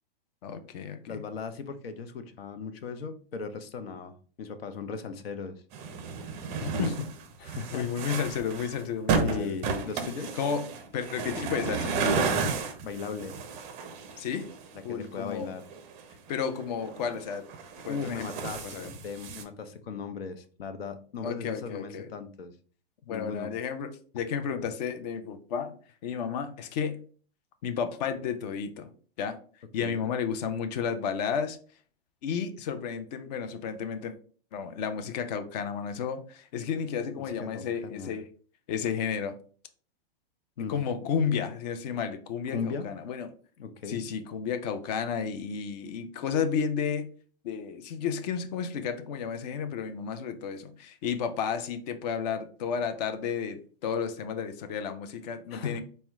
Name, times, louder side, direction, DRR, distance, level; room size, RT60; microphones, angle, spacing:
voice 1, 0.4-1.2 6.6-7.1 7.7-9.6 10.3-10.7 10.9-12.5 14.2-14.5 14.8-15.5 16.3-17.5 17.8-18.3 18.6-18.9 21.2-22.1 23.1-25.8 26.0-27.0 27.6-28.9 29.2-29.4 29.7-31.6 32.2-34.1 34.5-38.3 38.7-39.4 40.7-43.3 43.9-47.1 47.4-55.8, left 7 dB, 45° left, 9 dB, 0.5 m, -32 dB
voice 2, 1.0-5.6 7.4-7.9 9.2-10.3 12.8-13.3 14.7-15.6 17.9-22.5 23.1-23.5 29.8-30.1 37.2-38.1 40.6-40.8 42.5-42.9 43.6-44.1 55.5-55.8, left 5 dB, 85° left, 10 dB, 0.7 m, -37 dB
sound 1, 5.7-14.8 15.4-16.3 16.6-19.4, right 5 dB, 25° right, 0.4 m, -32 dB
4.2 x 2.1 x 3.5 m, 0.43 s
hypercardioid pair, 135°, 29 cm